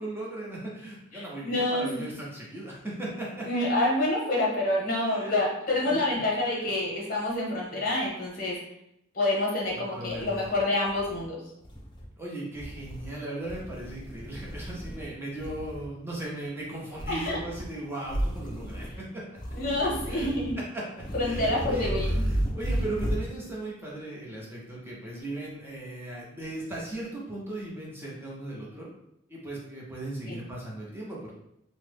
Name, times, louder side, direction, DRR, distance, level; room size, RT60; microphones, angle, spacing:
voice 1, 0.0-3.4 5.0-5.3 5.8-5.9 6.4-6.7 7.7-7.9 9.7-10.4 12.2-19.2 20.1-20.3 20.9-28.9 29.3-31.4, right 1 dB, 10° right, -5 dB, 0.7 m, -38 dB
voice 2, 1.1-1.9 3.5-8.6 9.1-11.4 17.1-17.4 19.5-20.6 21.1-22.2 30.3-30.4, left 1 dB, 45° left, -3 dB, 0.9 m, -27 dB
sound 1, 9.7-9.8 10.1-11.2 11.6-12.1 12.5-13.1 13.4-15.1 15.4-15.9 16.9-17.7 18.0-19.0 19.4-20.6 20.9-23.3, equal, 25° left, 0.7 m, -33 dB
3.0 x 2.1 x 3.3 m, 0.80 s
head